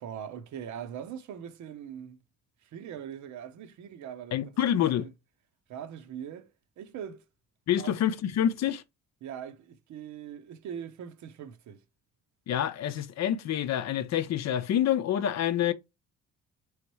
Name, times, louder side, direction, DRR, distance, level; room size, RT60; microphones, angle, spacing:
voice 1, 0.0-2.2 2.6-5.1 5.7-6.5 6.8-7.2 7.8-8.0 9.2-11.8, right 9 dB, 70° right, 0.7 m, -41 dB
voice 2, 4.3-5.1 7.7-8.8 12.5-15.7, left 10 dB, 60° left, 0.6 m, -27 dB
3.5 x 3.2 x 3.0 m
cardioid pair, 90°, 30 cm